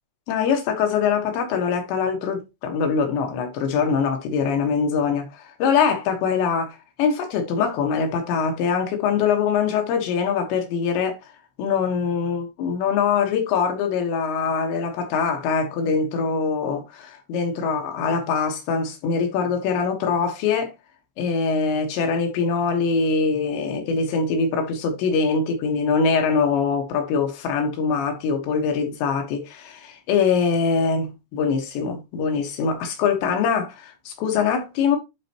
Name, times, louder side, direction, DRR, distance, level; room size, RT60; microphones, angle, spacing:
voice 1, 0.3-11.2 11.6-20.7 21.2-35.0, left 5 dB, 85° left, 3.8 m, -23 dB
11.5 x 4.2 x 3.0 m
omnidirectional pair, 5.0 m